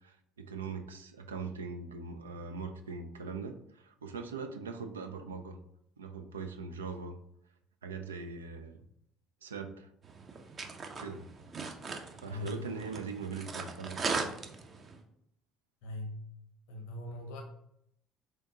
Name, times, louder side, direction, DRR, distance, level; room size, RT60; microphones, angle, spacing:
voice 1, 0.0-5.6 6.0-7.2 7.8-8.8 9.4-9.9 11.0-11.3 12.2-14.0, right 5 dB, 85° right, 7 dB, 0.3 m, -41 dB
sound 1, 10.0-15.0, right 4 dB, 40° right, 0.6 m, -39 dB
voice 2, 12.2-12.7 15.8-16.2 16.7-17.4, left 2 dB, 70° left, 4 dB, 0.8 m, -40 dB
3.8 x 3.4 x 2.7 m, 0.74 s
hypercardioid pair, 55°, 0 cm